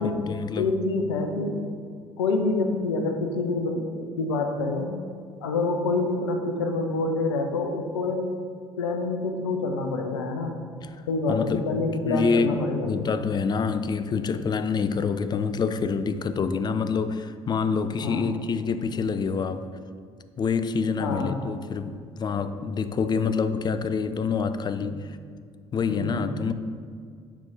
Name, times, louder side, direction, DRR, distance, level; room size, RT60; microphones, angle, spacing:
voice 1, 0.0-0.7 10.8-10.9 11.3-19.7 20.4-25.1 25.7-26.5, left 5 dB, 30° left, 11 dB, 0.4 m, -27 dB
voice 2, 0.6-1.5 2.2-4.9 5.4-8.2 8.8-10.6 11.1-12.9 18.0-18.3 21.0-21.5 24.8-24.9 25.9-26.4, left 3 dB, 75° left, 5 dB, 0.7 m, -27 dB
7.5 x 5.3 x 3.8 m, 2.1 s
figure-of-eight pair, 50°, 14 cm